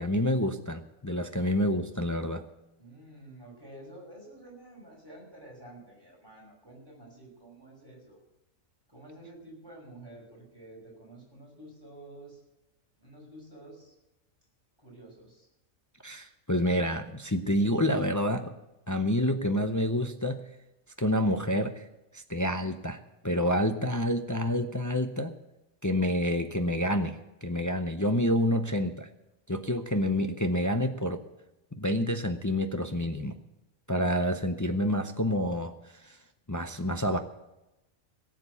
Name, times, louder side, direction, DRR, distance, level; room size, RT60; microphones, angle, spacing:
voice 1, 0.0-2.4 16.0-18.5 18.9-20.4 21.0-21.8 22.1-23.0 23.2-25.3 25.8-29.1 29.5-31.2 31.8-33.4 33.9-35.7 36.0-36.2 36.5-37.2, equal, 20° left, 6 dB, 0.4 m, -28 dB
voice 2, 2.8-8.2 8.9-12.4 13.0-13.9 14.8-15.5, right 1 dB, 15° right, -3 dB, 5.8 m, -50 dB
17.0 x 7.6 x 8.1 m, 0.96 s
omnidirectional pair, 1.4 m